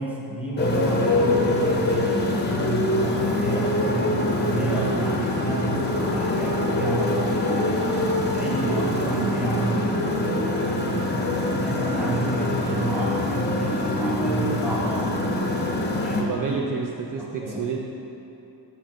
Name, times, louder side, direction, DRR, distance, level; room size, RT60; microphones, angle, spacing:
voice 1, 0.0-7.9 8.2-11.1 11.6-15.4 16.0-16.6 17.2-17.7, right 2 dB, 5° right, -5 dB, 1.0 m, -30 dB
Motorcycle, 0.6-16.2, left 1 dB, 25° left, 0.6 m, -24 dB
voice 2, 16.0-17.8, right 5 dB, 50° right, 0 dB, 0.5 m, -30 dB
6.9 x 5.1 x 4.4 m, 3.0 s
wide cardioid pair, 180°, 42 cm